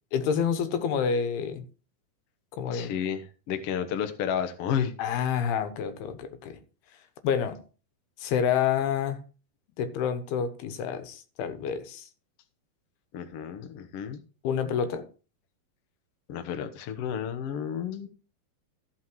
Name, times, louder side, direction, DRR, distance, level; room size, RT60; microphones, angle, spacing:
voice 1, 0.1-1.6 2.6-2.9 5.0-6.6 7.2-7.6 8.2-9.2 9.8-12.1 14.4-15.0, left 7 dB, 90° left, 3.2 m, -28 dB
voice 2, 2.7-4.9 13.1-14.2 16.3-18.1, left 8 dB, 70° left, 1.4 m, -31 dB
14.0 x 5.8 x 4.6 m
omnidirectional pair, 4.3 m